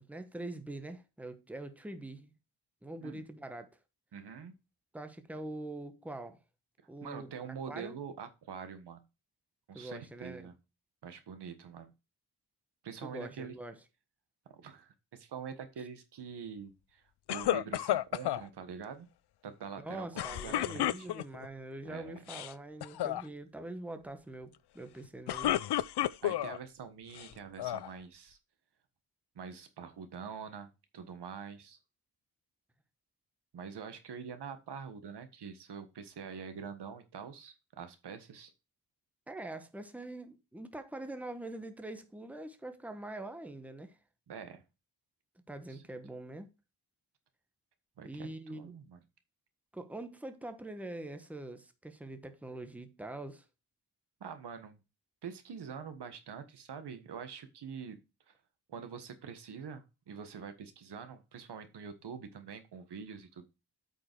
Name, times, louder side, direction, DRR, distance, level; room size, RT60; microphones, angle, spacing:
voice 1, 0.0-2.3 2.8-3.7 4.9-6.4 6.9-7.9 9.7-10.5 13.0-13.8 19.8-25.6 39.3-44.0 45.5-46.5 48.0-48.8 49.7-53.5, right 2 dB, 5° right, 1.0 m, -44 dB
voice 2, 4.1-4.5 7.0-9.0 9.7-10.5 11.0-11.9 12.8-13.5 14.5-17.0 17.3-19.1 19.4-21.1 21.8-22.2 26.2-28.4 29.3-30.7 30.9-31.8 33.5-38.5 44.3-44.6 45.7-45.8 48.0-49.0 54.2-54.8 55.2-58.0 58.3-58.4 58.7-63.4, right 6 dB, 85° right, 1.5 m, -45 dB
sound 1, 17.3-18.4 20.2-21.5 22.2-22.5 22.8-23.2 25.0-26.6 27.1-27.9, left 13 dB, 80° left, 0.5 m, -32 dB
8.4 x 5.2 x 4.6 m
wide cardioid pair, 125°, 39 cm